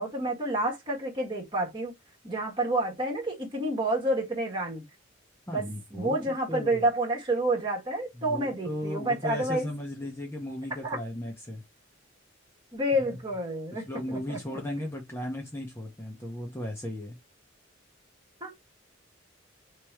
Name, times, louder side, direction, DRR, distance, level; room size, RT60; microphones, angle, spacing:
voice 1, 0.0-1.9 2.2-4.8 5.5-9.7 10.8-11.0 12.7-14.6 18.4-18.5, right 1 dB, 25° right, 1.6 m, -29 dB
voice 2, 5.5-6.8 8.2-11.6 13.0-13.2 13.9-17.2, left 1 dB, 15° left, 0.8 m, -36 dB
3.1 x 3.0 x 4.5 m
head